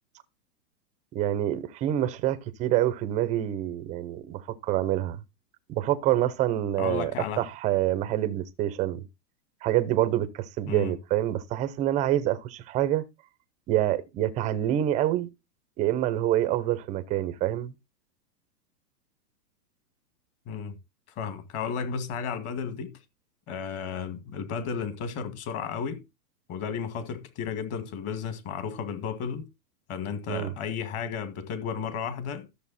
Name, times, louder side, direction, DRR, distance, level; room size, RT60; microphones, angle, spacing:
voice 1, 1.1-5.2 5.7-7.1 7.4-9.0 9.6-13.0 13.7-15.3 15.8-17.7 30.3-30.5, right 13 dB, 15° right, 0.7 m, -26 dB
voice 2, 6.8-7.4 10.7-10.9 20.5-20.7 21.2-22.9 23.5-26.0 26.5-29.5 29.9-32.5, left 6 dB, 30° left, 2.0 m, -33 dB
13.5 x 6.9 x 4.1 m
hypercardioid pair, 155°, 49 cm